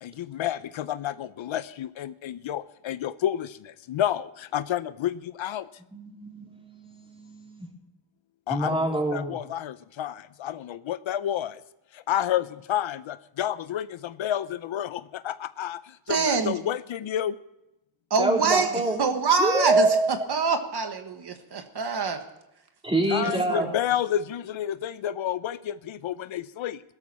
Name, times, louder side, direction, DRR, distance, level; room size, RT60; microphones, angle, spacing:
voice 1, 0.0-5.7 8.5-11.6 11.9-17.4 23.1-26.8, left 11 dB, 70° left, 15 dB, 0.7 m, -30 dB
voice 2, 5.9-7.7 8.5-9.4 18.2-19.0 19.4-20.3 22.8-23.7, right 2 dB, 10° right, 0 dB, 3.5 m, -26 dB
voice 3, 16.1-16.6 18.1-18.7 19.0-22.2 23.2-23.8, right 5 dB, 50° right, 6 dB, 1.5 m, -25 dB
17.0 x 13.0 x 4.3 m, 0.90 s
cardioid pair, 95°, 50 cm